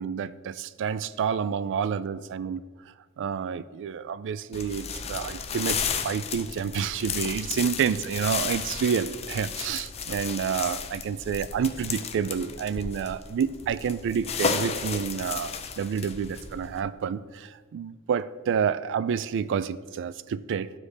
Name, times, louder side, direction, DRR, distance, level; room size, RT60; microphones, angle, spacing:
voice 1, 0.0-2.6 3.2-20.7, right 7 dB, 55° right, 16 dB, 0.3 m, -29 dB
sound 1, 4.5-16.8, left 6 dB, 30° left, 0.4 m, -33 dB
12.5 x 4.8 x 3.3 m, 1.5 s
head